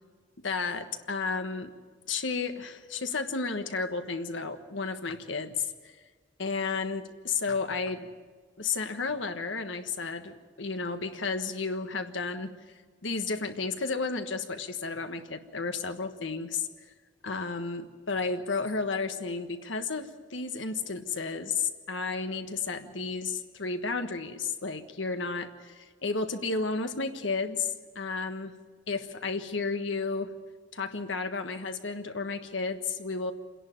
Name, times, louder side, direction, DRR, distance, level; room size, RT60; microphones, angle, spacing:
voice 1, 0.4-1.7 2.0-5.9 6.4-8.1 8.6-12.5 13.0-16.7 17.2-27.7 27.9-28.6 28.9-30.3 30.7-33.3, left 4 dB, 85° left, 7 dB, 1.4 m, -32 dB
27.5 x 11.0 x 8.6 m, 1.5 s
head